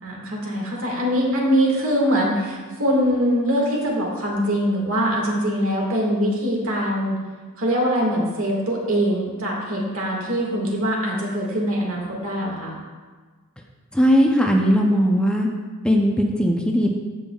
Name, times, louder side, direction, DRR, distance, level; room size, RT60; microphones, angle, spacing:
voice 1, 0.0-7.2 7.6-12.8, equal, 65° right, -2 dB, 1.9 m, -23 dB
voice 2, 13.9-15.5 15.8-17.0, equal, 5° left, 0 dB, 0.6 m, -18 dB
15.5 x 5.4 x 2.4 m, 1.4 s
head